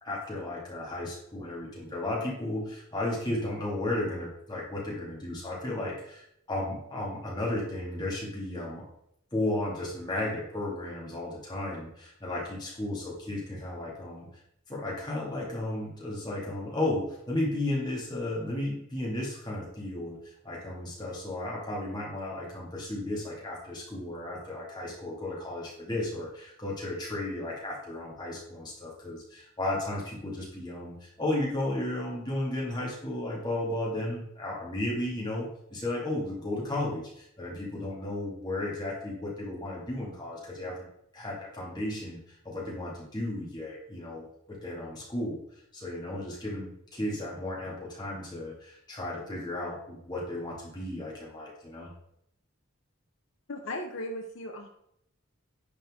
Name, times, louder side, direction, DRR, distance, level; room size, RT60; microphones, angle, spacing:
voice 1, 0.0-8.9 9.3-14.3 14.7-40.9 41.1-45.4 45.7-51.9, left 1 dB, 20° left, -4 dB, 2.2 m, -34 dB
voice 2, 53.5-54.7, left 1 dB, 65° left, 1 dB, 0.9 m, -36 dB
10.5 x 4.4 x 3.7 m, 0.73 s
head